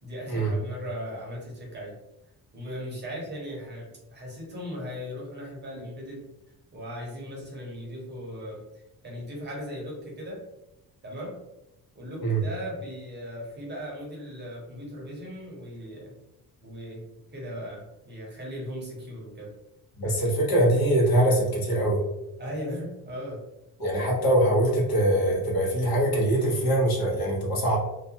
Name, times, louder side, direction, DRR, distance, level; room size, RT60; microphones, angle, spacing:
voice 1, 0.0-1.9 2.5-6.2 6.7-8.6 9.0-10.4 11.0-11.4 11.9-16.1 16.6-17.1 17.3-19.5 22.4-23.4, equal, 25° right, -4 dB, 0.8 m, -37 dB
voice 2, 20.0-22.0 23.8-27.8, right 1 dB, 65° left, -3 dB, 0.9 m, -23 dB
2.4 x 2.2 x 2.7 m, 0.91 s
cardioid pair, 155°, 39 cm